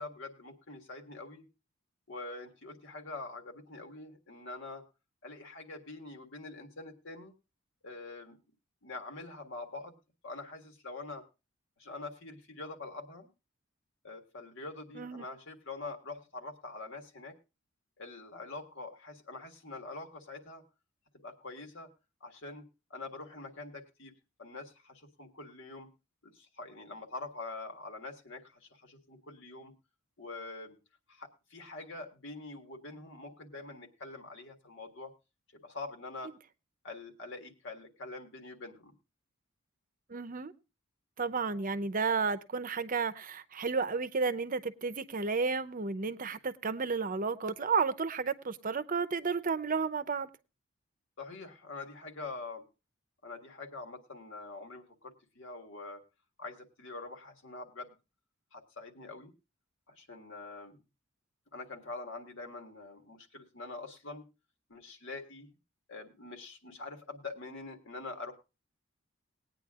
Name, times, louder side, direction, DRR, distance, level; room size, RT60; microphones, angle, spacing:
voice 1, 0.0-1.5 2.1-4.8 5.2-7.3 7.8-8.4 8.8-10.0 10.2-11.2 11.8-13.3 14.0-17.4 18.0-20.6 21.2-21.9 22.2-24.1 24.4-25.9 26.2-29.7 30.2-30.8 31.1-35.1 35.6-36.3 36.8-38.9 51.2-52.6 53.2-56.0 56.4-57.9 58.5-59.3 59.9-60.8 61.5-64.2 64.7-65.6 65.9-68.3, left 3 dB, 65° left, 1.8 m, -45 dB
voice 2, 40.1-40.5 41.2-50.3, right 5 dB, 40° right, 0.7 m, -32 dB
20.0 x 9.2 x 2.4 m
head